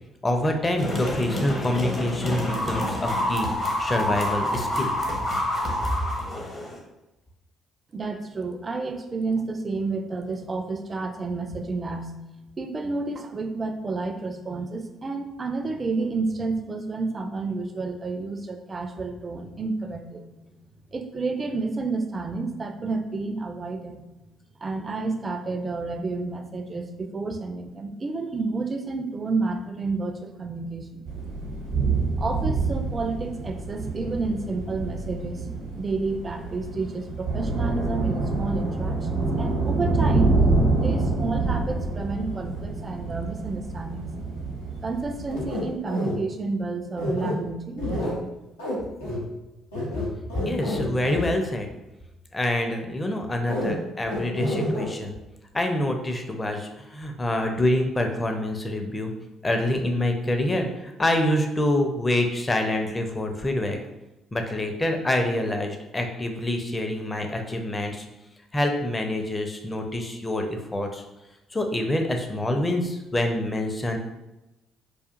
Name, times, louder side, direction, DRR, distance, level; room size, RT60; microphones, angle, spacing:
voice 1, 0.2-4.9 50.3-51.7 52.3-55.2 55.5-59.1 59.4-63.8 64.3-68.1 68.5-71.0 71.5-74.0, left 1 dB, 25° left, 4 dB, 0.6 m, -26 dB
sound 1, 0.8-6.8, left 1 dB, 45° left, 0.9 m, -28 dB
voice 2, 7.9-12.2 12.6-20.2 20.9-24.1 24.6-31.1 32.2-35.5 35.7-40.4 40.7-44.1 44.8-48.3, right 3 dB, 35° right, 6 dB, 0.4 m, -30 dB
sound 2, 31.1-45.7, right 3 dB, 80° right, 0.9 m, -27 dB
sound 3, 45.3-46.1 47.0-47.3 47.8-48.1 48.6-48.8 49.0-49.2 49.7-51.3 53.5-53.7 54.1-54.9, left 1 dB, 85° left, 0.7 m, -28 dB
4.8 x 2.4 x 2.5 m, 0.99 s
figure-of-eight pair, 45°, 0 cm